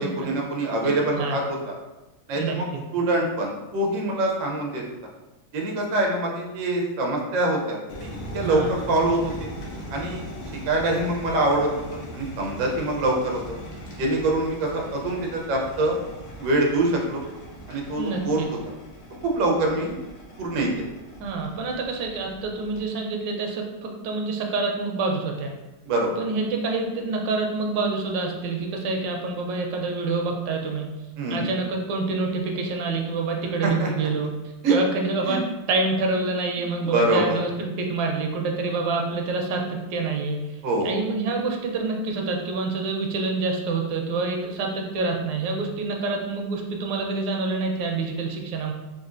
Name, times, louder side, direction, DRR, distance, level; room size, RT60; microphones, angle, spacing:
voice 1, 0.0-1.7 2.3-2.6 2.9-4.8 5.5-9.5 9.9-10.2 10.7-13.4 14.0-16.0 16.4-17.2 17.7-18.4 19.2-19.9 20.4-20.8 25.9-26.2 31.2-31.5 33.6-34.1 34.6-34.8 35.2-35.4 36.8-37.4 40.6-40.9, right 2 dB, 65° right, 0 dB, 0.8 m, -24 dB
voice 2, 0.8-1.4 2.3-2.8 8.4-8.7 18.0-18.5 21.2-25.5 26.2-30.9 31.3-34.3 34.7-48.7, right 3 dB, 85° right, 1 dB, 1.3 m, -27 dB
sound 1, 7.9-22.8, equal, 85° left, 1.4 m, -40 dB
3.9 x 2.4 x 2.5 m, 1.1 s
omnidirectional pair, 2.0 m